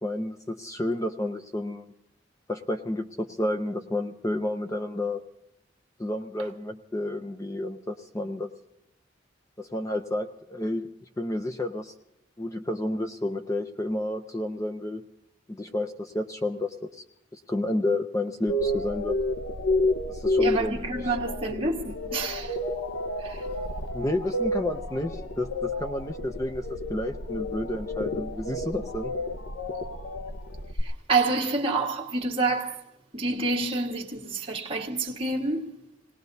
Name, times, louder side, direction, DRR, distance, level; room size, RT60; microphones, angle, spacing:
voice 1, 0.0-1.9 2.5-5.2 6.0-8.5 9.6-10.9 11.2-11.9 12.4-15.0 15.5-17.0 17.3-19.2 20.1-21.2 23.9-29.1, left 1 dB, 15° left, 0.5 m, -31 dB
sound 1, 18.5-30.8, left 1 dB, 85° left, 0.9 m, -30 dB
voice 2, 20.4-22.6 23.2-23.4 30.8-32.8 33.1-35.7, right 3 dB, 30° right, 1.6 m, -28 dB
27.0 x 19.0 x 2.7 m
head